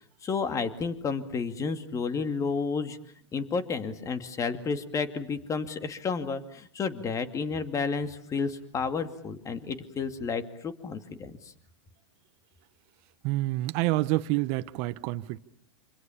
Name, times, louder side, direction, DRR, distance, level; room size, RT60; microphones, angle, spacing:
voice 1, 0.2-3.0 3.3-11.3, left 5 dB, 20° left, 2.3 m, -31 dB
voice 2, 13.2-15.4, right 18 dB, 45° right, 1.1 m, -28 dB
27.5 x 26.0 x 7.2 m
hypercardioid pair, 125°, 15 cm